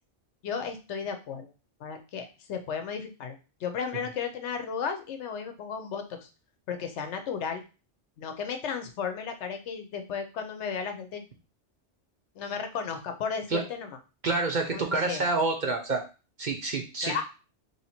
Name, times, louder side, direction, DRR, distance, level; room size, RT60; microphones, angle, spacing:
voice 1, 0.4-1.5 1.8-6.3 6.7-7.6 8.2-11.2 12.4-14.0 14.7-15.2 17.0-17.2, left 6 dB, 75° left, 6 dB, 1.0 m, -34 dB
voice 2, 14.2-16.0 16.4-17.1, right 3 dB, 50° right, 2 dB, 0.7 m, -28 dB
3.2 x 2.7 x 4.2 m, 0.32 s
omnidirectional pair, 1.2 m